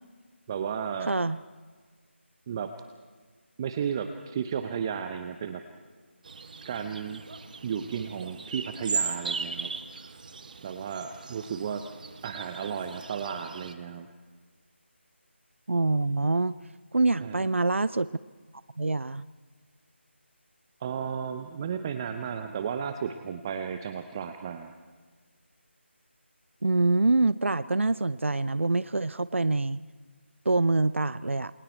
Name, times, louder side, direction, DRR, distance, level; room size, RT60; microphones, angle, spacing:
voice 1, 0.5-1.1 2.5-2.7 3.6-5.6 6.6-7.2 7.6-10.1 10.6-11.9 12.2-14.1 17.2-17.5 20.8-24.7, right 7 dB, 20° right, 8 dB, 0.7 m, -34 dB
voice 2, 1.1-1.4 15.7-16.5 16.9-18.1 18.8-19.2 26.6-29.8 30.5-31.5, right 2 dB, 75° right, 16 dB, 0.5 m, -25 dB
sound 1, 6.2-13.7, right 5 dB, 40° right, 1.3 m, -37 dB
28.0 x 21.5 x 4.5 m, 1.5 s
figure-of-eight pair, 160°, 7 cm